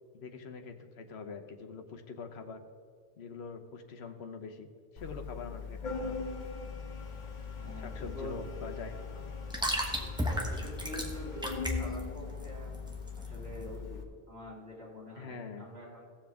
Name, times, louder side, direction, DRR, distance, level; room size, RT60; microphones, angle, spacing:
voice 1, 0.1-2.6 3.2-4.7 4.9-6.2 7.8-9.1 15.1-15.7, left 4 dB, 85° left, 6 dB, 1.2 m, -44 dB
Organ, 5.0-14.0, left 5 dB, 50° left, 1.1 m, -41 dB
sound 1, 7.0-13.7, equal, 5° right, 1.2 m, -36 dB
voice 2, 7.6-8.4 9.9-12.7 13.1-14.0 14.3-16.0, equal, 85° right, -5 dB, 3.8 m, -45 dB
17.0 x 7.3 x 3.5 m, 2.1 s
omnidirectional pair, 1.0 m